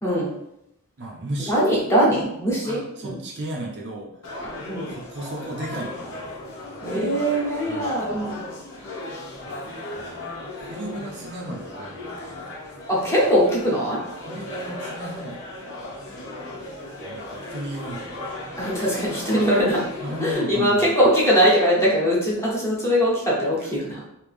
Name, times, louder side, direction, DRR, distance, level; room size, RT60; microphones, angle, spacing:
voice 1, 0.0-0.3 1.5-3.2 4.4-4.9 6.8-8.5 12.9-14.0 18.6-19.9 20.2-24.0, equal, 10° left, -6 dB, 1.1 m, -21 dB
voice 2, 1.0-1.6 2.6-4.2 4.9-6.4 7.7-8.2 9.5-12.5 14.3-15.4 17.0-18.7 20.0-20.9 23.6-23.7, right 1 dB, 50° right, -1 dB, 0.6 m, -35 dB
sound 1, 4.2-20.3, left 2 dB, 60° left, 1.1 m, -36 dB
3.3 x 2.8 x 3.4 m, 0.81 s
head